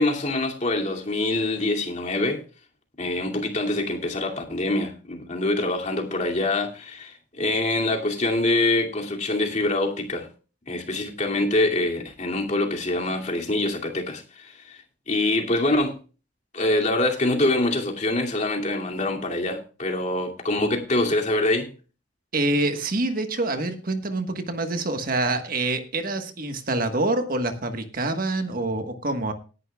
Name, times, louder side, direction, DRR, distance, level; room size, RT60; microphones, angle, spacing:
voice 1, 0.0-2.4 3.0-10.3 10.7-16.0 16.5-21.7, left 2 dB, 40° left, 2.5 m, -25 dB
voice 2, 22.3-29.3, right 2 dB, 50° right, 1.4 m, -26 dB
18.5 x 11.0 x 2.3 m
head